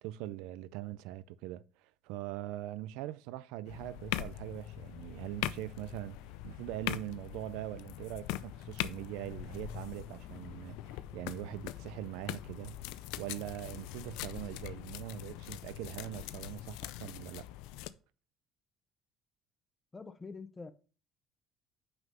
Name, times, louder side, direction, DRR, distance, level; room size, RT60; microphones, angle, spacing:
voice 1, 0.0-12.8 13.2-17.5, right 15 dB, 90° right, 0.4 m, -42 dB
sound 1, 3.7-17.9, left 14 dB, 90° left, 0.5 m, -42 dB
sound 2, 8.3-16.1, left 4 dB, 45° left, 1.0 m, -57 dB
voice 2, 19.9-20.7, left 4 dB, 15° left, 0.7 m, -45 dB
6.0 x 5.5 x 5.5 m
cardioid pair, 135°, 0 cm